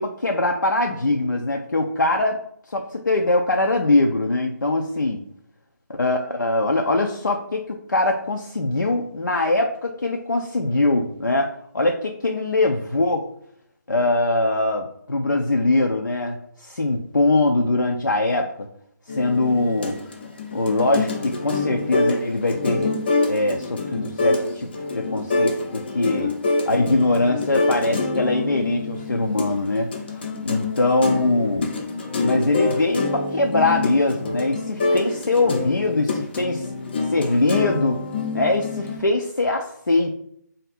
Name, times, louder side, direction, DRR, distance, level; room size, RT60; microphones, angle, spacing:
voice 1, 0.0-2.4 2.7-5.2 6.0-13.3 13.9-18.7 19.1-20.0 20.5-22.9 23.3-24.7 24.9-26.3 26.7-29.9 30.4-31.7 32.2-36.7 37.1-38.0 38.3-40.1, left 2 dB, 80° left, 2 dB, 0.5 m, -22 dB
sound 1, 19.1-39.0, left 3 dB, 35° left, 0.5 m, -26 dB
3.4 x 2.6 x 4.2 m, 0.69 s
figure-of-eight pair, 150°, 10 cm